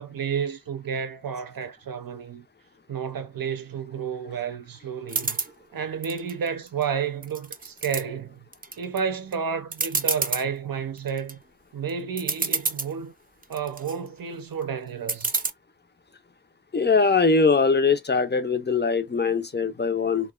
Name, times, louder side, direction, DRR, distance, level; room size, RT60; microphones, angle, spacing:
voice 1, 0.0-2.4 2.9-5.4 5.7-8.4 8.8-11.4 11.7-13.1 13.5-15.3, right 7 dB, 80° right, 0.5 m, -31 dB
sound 1, 5.1-5.5 6.0-6.8 7.2-8.0 8.5-9.0 9.3-9.4 9.7-10.4 11.0-11.3 11.9-12.0 12.2-12.9 13.4-13.9 15.1-15.5, right 4 dB, 25° right, 0.4 m, -28 dB
voice 2, 16.7-20.3, left 4 dB, 30° left, 0.5 m, -21 dB
2.7 x 2.1 x 2.2 m
wide cardioid pair, 55°, 34 cm